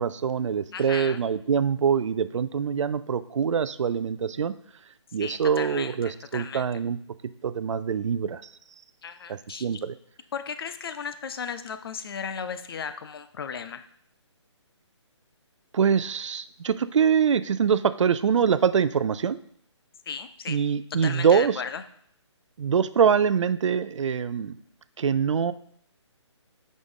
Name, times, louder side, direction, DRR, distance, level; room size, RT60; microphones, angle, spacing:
voice 1, 0.0-4.5 5.1-7.0 7.4-8.4 9.3-9.9 15.7-19.4 20.5-21.6 22.6-24.6 25.0-25.5, right 7 dB, 75° right, 15 dB, 0.4 m, -24 dB
voice 2, 0.7-1.2 5.2-6.7 9.0-9.7 10.3-13.8 20.1-20.6 21.0-21.8, left 6 dB, 50° left, 11 dB, 0.5 m, -35 dB
6.9 x 5.2 x 3.7 m, 0.68 s
hypercardioid pair, 155°, 16 cm